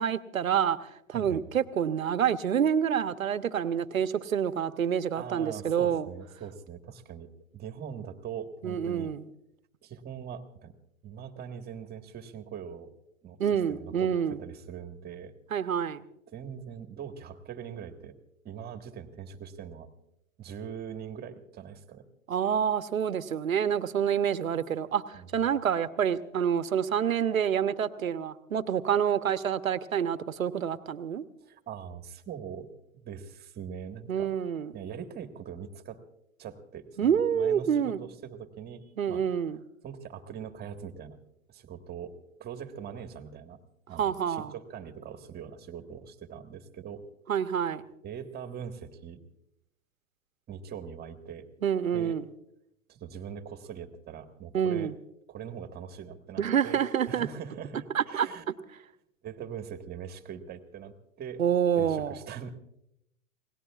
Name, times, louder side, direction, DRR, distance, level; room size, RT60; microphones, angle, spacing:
voice 1, 0.0-6.1 8.6-9.2 13.4-14.4 15.5-16.0 22.3-31.2 34.1-34.7 37.0-38.0 39.0-39.6 44.0-44.5 47.3-47.8 51.6-52.2 54.5-54.9 56.4-57.3 57.9-58.3 61.4-62.1, right 8 dB, 90° right, 13 dB, 1.0 m, -27 dB
voice 2, 5.2-9.1 9.8-10.7 11.0-12.9 13.2-13.4 13.7-15.3 15.6-15.7 16.3-18.1 18.4-19.9 20.4-22.0 25.1-25.3 31.4-32.7 32.9-34.3 34.7-36.0 36.4-39.2 39.8-41.2 41.5-42.1 42.4-43.6 43.9-47.0 48.0-49.2 50.5-51.5 51.9-52.2 52.9-54.9 55.3-56.8 57.1-58.4 59.2-61.4 61.7-62.5, right 8 dB, 25° right, 7 dB, 1.6 m, -42 dB
28.5 x 18.5 x 2.4 m, 0.79 s
hypercardioid pair, 110°, 40 cm